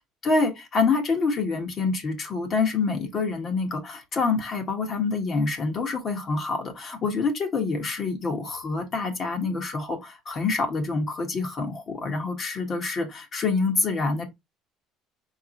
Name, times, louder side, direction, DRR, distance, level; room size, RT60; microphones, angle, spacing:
voice 1, 0.2-14.3, left 4 dB, 40° left, 1.6 m, -26 dB
4.8 x 3.5 x 3.1 m
cardioid pair, 125°, 0 cm